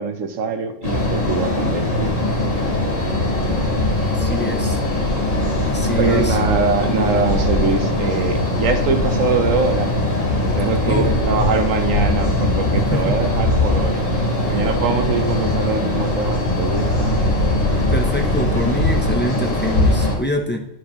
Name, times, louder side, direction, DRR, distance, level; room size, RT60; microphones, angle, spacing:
voice 1, 0.0-2.1 6.0-9.9 10.4-14.0 14.5-17.2, right 5 dB, 85° right, 7 dB, 1.2 m, -23 dB
sound 1, 0.8-20.2, left 1 dB, 80° left, 2.1 m, -20 dB
voice 2, 4.1-4.8 5.6-6.4 10.9-11.1 12.9-13.2 17.9-20.7, left 1 dB, 15° left, 3 dB, 0.4 m, -25 dB
9.7 x 6.2 x 3.0 m, 0.88 s
omnidirectional pair, 1.3 m